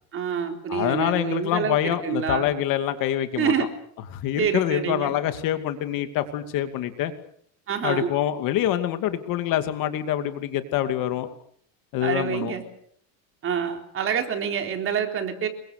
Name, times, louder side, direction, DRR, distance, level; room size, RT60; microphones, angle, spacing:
voice 1, 0.1-2.5 3.4-3.7 4.4-5.1 7.7-8.1 12.0-12.6 13.4-15.5, right 7 dB, 30° right, 5 dB, 3.8 m, -27 dB
voice 2, 0.7-3.5 4.1-7.1 7.8-11.3 11.9-12.6, left 12 dB, 50° left, 9 dB, 2.6 m, -25 dB
28.5 x 23.5 x 6.7 m, 0.65 s
cardioid pair, 160°, 42 cm